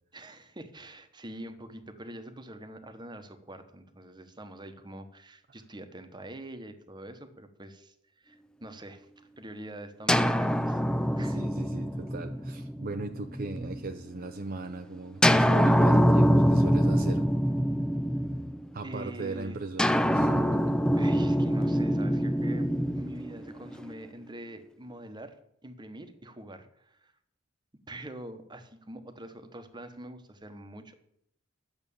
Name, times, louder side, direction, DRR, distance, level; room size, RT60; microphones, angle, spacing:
voice 1, 0.1-10.8 11.2-11.4 18.8-19.6 21.0-25.4 25.6-27.1 27.9-31.0, right 1 dB, 20° right, 9 dB, 1.1 m, -44 dB
sound 1, 10.1-13.9 15.2-18.8 19.8-23.9, equal, 5° left, 0.4 m, -24 dB
voice 2, 11.3-17.3 18.7-20.8, right 3 dB, 45° right, 7 dB, 0.6 m, -38 dB
10.5 x 8.0 x 7.1 m, 0.73 s
head